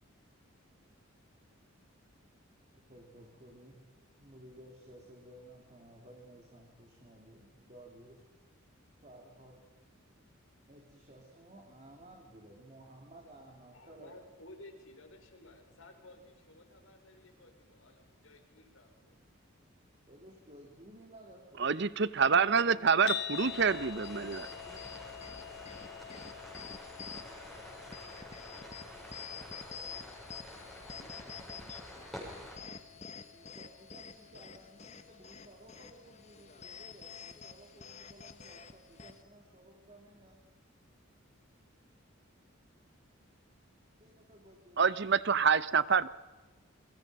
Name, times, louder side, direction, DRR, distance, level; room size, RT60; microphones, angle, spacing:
voice 1, 2.7-3.9 4.2-8.2 9.0-9.6 10.7-14.1 20.1-21.7 22.3-23.0 33.3-40.4 44.0-44.8, right 1 dB, 35° right, -1 dB, 3.6 m, -55 dB
voice 2, 13.7-19.1, left 2 dB, 80° left, 4 dB, 5.0 m, -55 dB
voice 3, 21.6-24.5 44.8-46.1, right 6 dB, 55° right, 17 dB, 0.8 m, -27 dB
sound 1, 23.1-39.3, left 10 dB, 55° left, 2.0 m, -48 dB
sound 2, 23.3-32.6, equal, ahead, 6.9 m, -49 dB
sound 3, 24.0-39.2, left 5 dB, 35° left, 1.3 m, -49 dB
28.0 x 24.0 x 5.4 m, 1.3 s
head